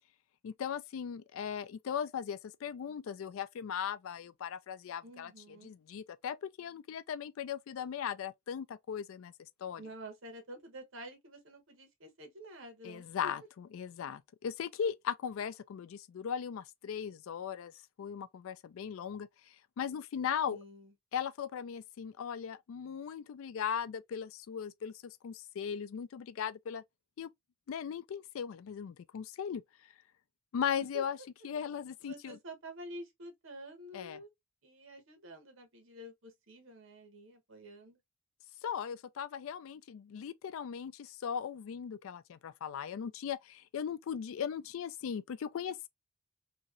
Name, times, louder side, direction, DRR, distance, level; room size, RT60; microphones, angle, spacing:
voice 1, 0.4-5.3 5.6-9.3 9.6-9.8 12.8-17.7 18.0-20.6 21.1-26.8 27.2-27.3 27.7-29.6 30.5-31.2 31.4-32.4 33.9-34.2 38.6-45.9, left 8 dB, 75° left, 0.3 m, -38 dB
voice 2, 5.0-5.7 9.8-13.3 20.5-20.9 30.7-31.0 32.0-34.3 34.6-38.0, right 1 dB, 70° right, 1.0 m, -49 dB
2.9 x 2.7 x 2.4 m
head